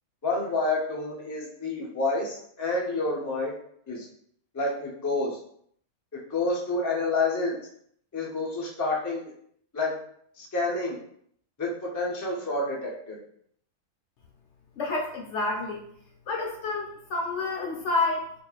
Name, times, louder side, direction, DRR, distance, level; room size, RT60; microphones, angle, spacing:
voice 1, 0.2-3.5 3.9-4.1 4.5-5.4 6.1-7.6 8.1-9.3 9.7-9.9 10.4-11.0 11.6-13.2, left 2 dB, 25° left, -3 dB, 0.4 m, -29 dB
voice 2, 14.8-15.8 16.3-18.3, left 3 dB, 65° left, -1 dB, 0.7 m, -29 dB
4.6 x 2.5 x 2.3 m, 0.67 s
omnidirectional pair, 1.5 m